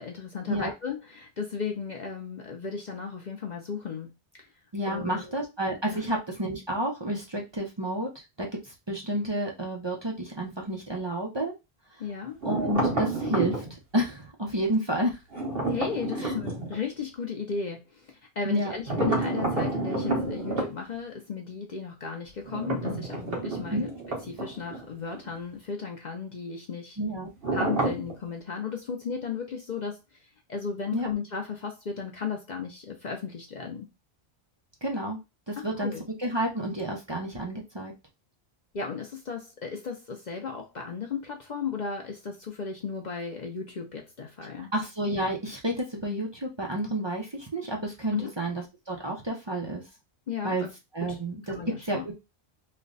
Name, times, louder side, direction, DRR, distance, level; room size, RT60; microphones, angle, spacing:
voice 1, 0.0-4.1 4.4-4.5 4.9-5.3 5.9-6.0 12.0-12.4 15.7-23.9 24.3-27.0 27.5-33.9 35.6-36.0 38.7-44.7 48.1-48.3 50.3-50.7 51.1-51.2 51.5-52.0, left 5 dB, 50° left, 0.7 m, -35 dB
voice 2, 4.7-11.5 12.4-13.7 13.9-15.2 16.2-16.3 18.4-18.7 23.7-23.9 27.0-27.3 30.9-31.1 34.8-35.2 35.5-35.9 36.2-37.9 44.7-49.8 50.4-50.6 50.9-51.5 51.8-52.1, right 1 dB, 30° right, 0.7 m, -30 dB
sound 1, 12.4-13.7 15.3-16.8 18.9-20.7 22.4-24.9 25.1-25.3 27.4-28.1, right 2 dB, 60° right, 1.4 m, -29 dB
3.2 x 2.2 x 3.9 m
omnidirectional pair, 1.1 m